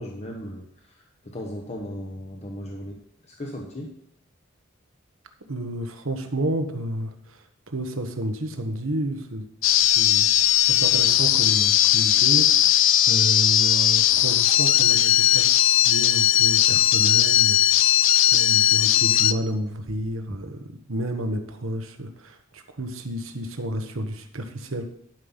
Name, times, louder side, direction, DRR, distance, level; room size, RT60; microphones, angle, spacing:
voice 1, 0.0-3.9, equal, 35° left, 0 dB, 1.1 m, -37 dB
voice 2, 5.5-9.5 9.8-10.3 10.7-12.8 13.1-17.6 17.9-18.0 18.3-24.9, right 1 dB, 80° right, 6 dB, 1.3 m, -30 dB
sound 1, 9.6-19.3, left 12 dB, 65° left, 0.5 m, -18 dB
12.0 x 5.6 x 5.7 m, 0.68 s
head